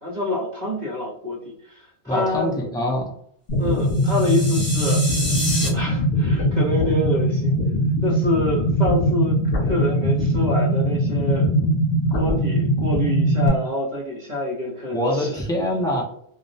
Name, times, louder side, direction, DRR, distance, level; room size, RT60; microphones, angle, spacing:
voice 1, 0.0-2.5 3.6-5.4 5.7-7.6 8.0-9.4 9.6-11.7 12.1-15.3, left 1 dB, 45° right, -4 dB, 0.9 m, -27 dB
voice 2, 2.1-3.1 14.9-16.0, left 1 dB, 5° left, -3 dB, 0.3 m, -24 dB
sound 1, 3.5-13.5, equal, 70° left, 0.8 m, -21 dB
sound 2, 3.9-5.7, equal, 30° left, 1.1 m, -28 dB
2.3 x 2.0 x 2.6 m, 0.68 s
omnidirectional pair, 1.1 m